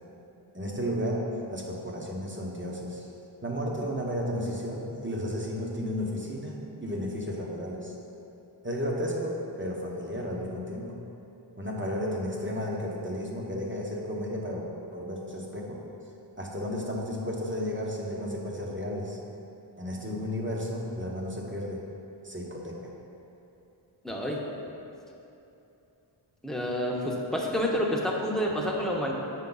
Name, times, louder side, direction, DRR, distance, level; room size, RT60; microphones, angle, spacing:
voice 1, 0.5-3.1 3.4-6.5 6.8-7.9 8.6-11.0 11.6-15.8 16.4-19.2 19.8-21.9 22.2-22.9, equal, 25° right, -2 dB, 1.1 m, -33 dB
voice 2, 24.0-24.4 26.4-29.1, equal, ahead, -2 dB, 1.0 m, -28 dB
7.4 x 5.1 x 4.0 m, 2.9 s
wide cardioid pair, 40°, 48 cm